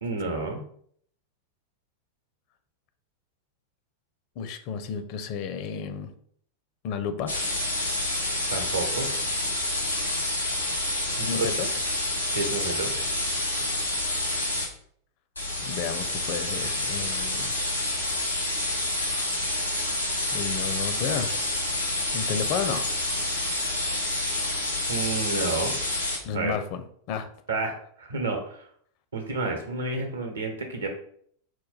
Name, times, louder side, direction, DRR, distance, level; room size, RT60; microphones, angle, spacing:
voice 1, 0.0-0.6 8.5-9.1 11.2-11.4 12.3-12.9 24.9-25.7 26.3-26.6 27.5-28.7 29.1-30.9, right 3 dB, 75° right, 4 dB, 0.9 m, -30 dB
voice 2, 4.4-6.1 6.8-7.3 11.2-11.7 15.6-17.5 20.3-21.3 22.1-22.9 26.2-27.3, left 7 dB, 45° left, 9 dB, 0.5 m, -32 dB
sound 1, 7.3-14.7 15.4-26.2, left 1 dB, 90° left, 1.2 m, -28 dB
4.6 x 2.2 x 4.1 m, 0.62 s
figure-of-eight pair, 90°, 0 cm